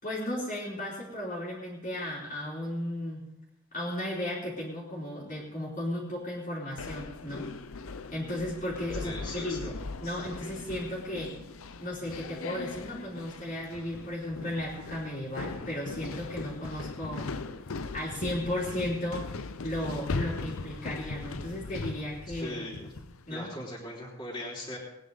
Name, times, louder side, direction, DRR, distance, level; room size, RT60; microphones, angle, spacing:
voice 1, 0.0-3.2 3.7-7.5 8.1-11.4 11.8-17.3 17.9-19.3 19.6-22.6 23.3-23.5, left 1 dB, 35° left, -6 dB, 3.4 m, -35 dB
sound 1, 6.8-23.3, left 3 dB, 75° left, 0.7 m, -39 dB
voice 2, 9.0-9.7 22.3-22.9 23.3-24.8, left 1 dB, 20° left, -5 dB, 3.8 m, -39 dB
19.5 x 9.9 x 4.0 m, 0.84 s
head